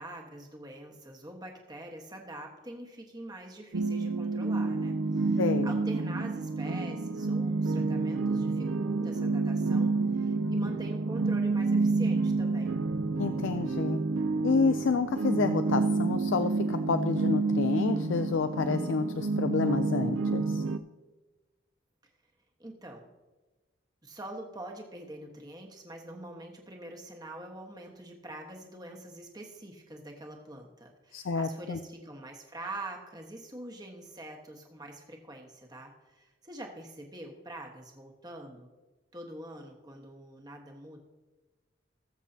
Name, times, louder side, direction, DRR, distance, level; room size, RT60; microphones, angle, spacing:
voice 1, 0.0-12.8 22.6-23.0 24.0-38.7 39.1-41.0, right 1 dB, 20° right, 1 dB, 1.4 m, -45 dB
sound 1, 3.7-20.8, right 3 dB, 90° right, 0.6 m, -29 dB
voice 2, 5.4-5.7 13.2-14.0 14.4-20.6 31.1-31.8, left 4 dB, 70° left, 9 dB, 0.4 m, -29 dB
19.5 x 7.4 x 2.8 m, 1.2 s
head